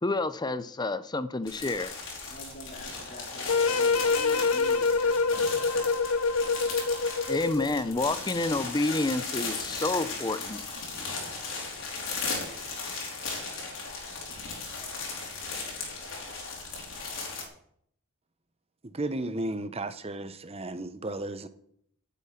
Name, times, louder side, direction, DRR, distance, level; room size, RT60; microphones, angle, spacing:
voice 1, 0.0-1.9 7.3-10.8, left 2 dB, 20° left, 0.6 m, -29 dB
sound 1, 1.5-17.4, left 4 dB, 60° left, 4.6 m, -37 dB
voice 2, 2.2-6.0, left 1 dB, 45° left, 4.1 m, -46 dB
sound 2, 3.5-7.8, left 4 dB, 80° left, 0.8 m, -26 dB
voice 3, 18.8-21.5, right 2 dB, 30° right, 0.9 m, -34 dB
15.5 x 8.5 x 5.8 m
head